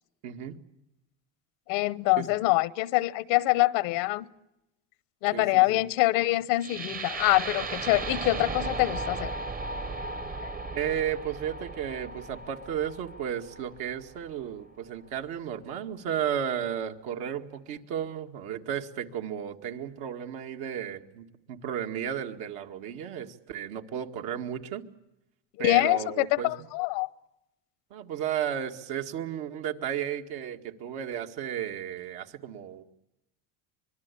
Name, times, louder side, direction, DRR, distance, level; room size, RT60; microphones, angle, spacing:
voice 1, 0.2-0.6 2.2-2.3 5.3-5.8 10.7-24.9 25.6-26.7 27.9-32.8, right 9 dB, 75° right, 2.1 m, -34 dB
voice 2, 1.7-4.3 5.2-9.3 10.4-10.5 25.6-27.1, left 19 dB, 85° left, 1.0 m, -25 dB
sound 1, 6.6-14.6, right 3 dB, 25° right, 0.9 m, -36 dB
25.0 x 21.5 x 8.4 m
cardioid pair, 115°, 37 cm